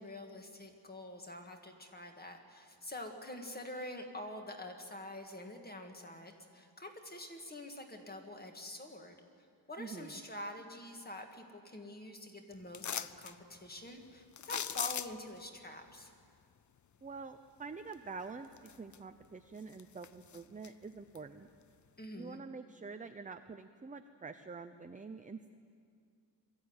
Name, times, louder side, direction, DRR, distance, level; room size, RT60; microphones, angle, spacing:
voice 1, 0.0-16.1 22.0-22.4, left 1 dB, 20° left, 3 dB, 1.9 m, -46 dB
voice 2, 9.8-10.2 17.0-21.5 22.1-25.5, right 4 dB, 20° right, 8 dB, 0.5 m, -46 dB
sound 1, 12.7-13.3 14.4-15.4 17.9-18.0 18.5-19.2 19.6-20.7 21.1-21.2, left 8 dB, 45° left, 0.5 m, -39 dB
22.5 x 14.0 x 9.7 m, 2.3 s
wide cardioid pair, 165°, 41 cm